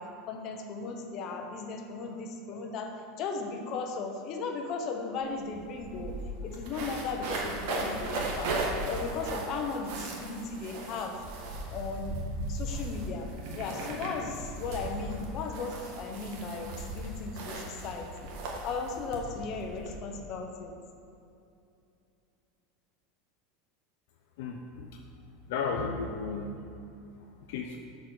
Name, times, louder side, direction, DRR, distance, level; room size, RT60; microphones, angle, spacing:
voice 1, 0.0-6.2 6.4-8.6 8.9-11.2 11.7-12.2 12.5-13.3 13.5-18.3 18.6-20.8, left 4 dB, 45° left, 4 dB, 1.0 m, -36 dB
sound 1, 5.2-5.3 5.5-20.0, right 2 dB, 65° right, 1.5 m, -37 dB
voice 2, 24.4-25.0 25.5-26.5 27.5-27.8, left 5 dB, 75° left, 2 dB, 0.7 m, -33 dB
6.8 x 4.8 x 6.2 m, 2.6 s
supercardioid pair, 125°, 0 cm